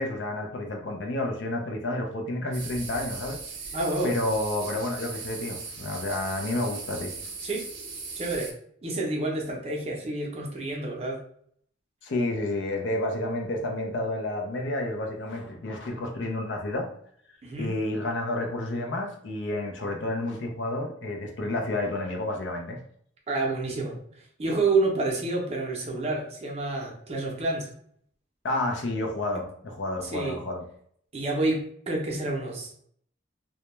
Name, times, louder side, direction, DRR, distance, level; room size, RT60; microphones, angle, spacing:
voice 1, 0.0-3.4 4.0-7.1 12.0-16.9 17.6-22.8 28.4-30.6, left 1 dB, 70° left, 3 dB, 0.5 m, -30 dB
sound 1, 2.5-8.5, right 4 dB, 80° right, 0.5 m, -38 dB
voice 2, 3.7-4.2 7.4-7.7 8.2-8.5 8.8-11.2 17.4-17.7 23.3-24.0 24.4-27.7 30.0-30.4 31.1-32.7, right 2 dB, 35° right, -1 dB, 0.5 m, -28 dB
2.2 x 2.1 x 2.9 m, 0.64 s
head